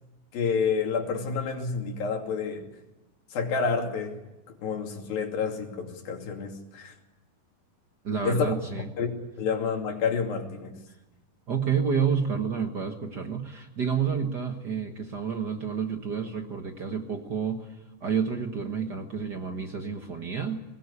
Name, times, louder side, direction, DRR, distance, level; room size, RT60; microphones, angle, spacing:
voice 1, 0.3-2.7 3.3-4.2 4.6-6.9 8.2-8.5 9.0-9.1 9.4-10.7, left 5 dB, 75° left, 3 dB, 4.4 m, -29 dB
voice 2, 8.0-8.9 11.5-20.6, right 6 dB, 60° right, 4 dB, 1.1 m, -29 dB
22.5 x 19.5 x 9.8 m, 1.0 s
omnidirectional pair, 4.2 m